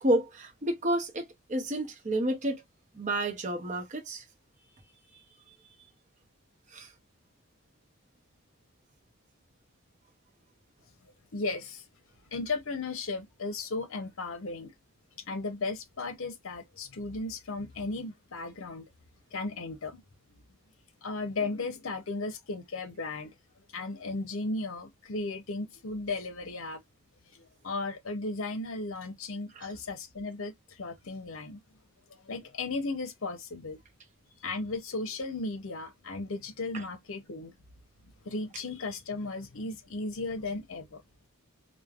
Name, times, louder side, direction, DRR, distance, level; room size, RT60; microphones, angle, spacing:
voice 1, 0.0-2.6 3.0-4.2 6.7-6.9 29.6-29.7, right 1 dB, 35° right, 0.6 m, -30 dB
voice 2, 11.3-11.8 12.3-14.7 15.3-18.9 19.3-20.0 20.3-20.4 21.0-23.3 23.7-26.8 27.3-31.6 32.1-33.8 34.4-37.5 38.2-41.0, left 3 dB, 65° left, 0.7 m, -35 dB
3.1 x 2.1 x 2.3 m
head